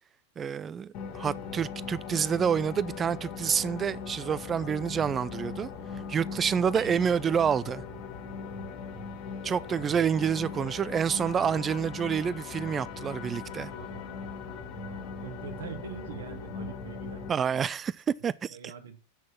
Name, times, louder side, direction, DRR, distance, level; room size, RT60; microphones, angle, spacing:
voice 1, 0.4-5.7 6.1-7.8 9.4-13.7 17.3-18.7, right 7 dB, 20° right, 0.4 m, -28 dB
sound 1, 0.9-17.3, left 5 dB, 40° left, 2.2 m, -39 dB
sound 2, 6.7-11.5, right 10 dB, 40° right, 1.2 m, -51 dB
voice 2, 13.6-17.2 18.5-19.0, right 6 dB, 60° right, 1.8 m, -44 dB
8.2 x 6.3 x 7.4 m
figure-of-eight pair, 90°, 0 cm